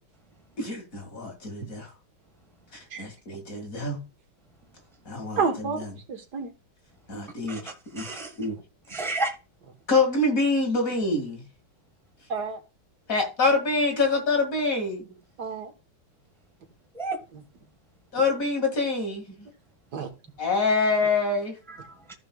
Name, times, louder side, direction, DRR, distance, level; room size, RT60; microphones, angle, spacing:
voice 1, 0.6-1.9 2.7-4.0 5.1-5.9 7.1-7.6 7.9-8.1 8.4-8.6 9.9-11.4 13.1-15.0 18.1-19.2 20.4-21.5, left 3 dB, 40° left, 2.6 m, -25 dB
voice 2, 5.4-6.5 12.3-12.6 15.4-15.7 19.9-20.1, right 5 dB, 55° right, 1.8 m, -29 dB
voice 3, 8.0-8.3 8.9-9.3 16.9-17.2 19.3-19.5 21.7-22.1, right 2 dB, ahead, 1.1 m, -32 dB
14.5 x 5.6 x 2.3 m
omnidirectional pair, 2.2 m